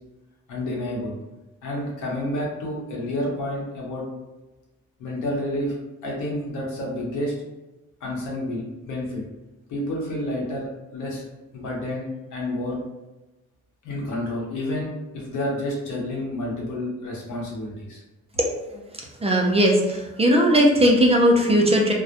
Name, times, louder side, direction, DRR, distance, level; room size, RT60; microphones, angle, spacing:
voice 1, 0.5-1.1 1.6-4.0 5.0-5.7 6.0-7.3 8.0-9.2 9.7-11.3 11.5-12.8 13.8-18.0, left 1 dB, 85° left, -3 dB, 0.9 m, -29 dB
voice 2, 19.2-21.9, equal, 20° right, 0 dB, 0.4 m, -18 dB
2.2 x 2.1 x 2.7 m, 1.1 s
cardioid pair, 90°, 30 cm